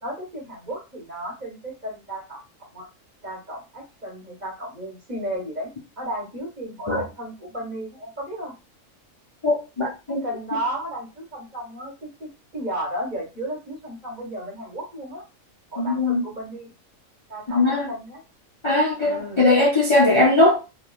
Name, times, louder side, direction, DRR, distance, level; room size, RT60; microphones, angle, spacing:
voice 1, 0.0-2.4 2.7-2.9 3.2-5.7 6.0-8.5 10.1-15.2 15.7-16.7 17.3-18.2 19.0-19.4, right 1 dB, 35° right, 1.3 m, -34 dB
voice 2, 9.4-10.2 15.8-16.2 17.5-17.9 18.6-20.6, left 2 dB, 40° left, 0.4 m, -19 dB
3.1 x 2.4 x 2.3 m
omnidirectional pair, 1.3 m